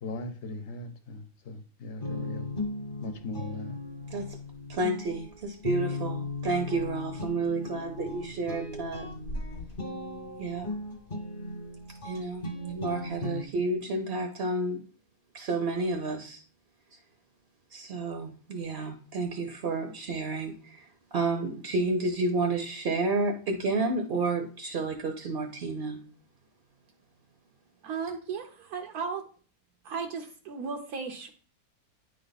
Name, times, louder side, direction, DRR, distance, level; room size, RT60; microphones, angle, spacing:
voice 1, 0.0-2.5 3.0-3.8, left 2 dB, 55° left, 1.0 m, -39 dB
sound 1, 2.0-13.4, left 2 dB, 40° left, 1.2 m, -37 dB
voice 2, 4.7-9.1 10.4-10.7 12.0-14.8 15.3-16.4 17.7-20.8 21.1-26.0, right 3 dB, 50° right, 0.8 m, -30 dB
voice 3, 27.8-29.2 29.8-31.3, right 5 dB, 80° right, 1.2 m, -35 dB
9.6 x 3.4 x 4.0 m
omnidirectional pair, 1.5 m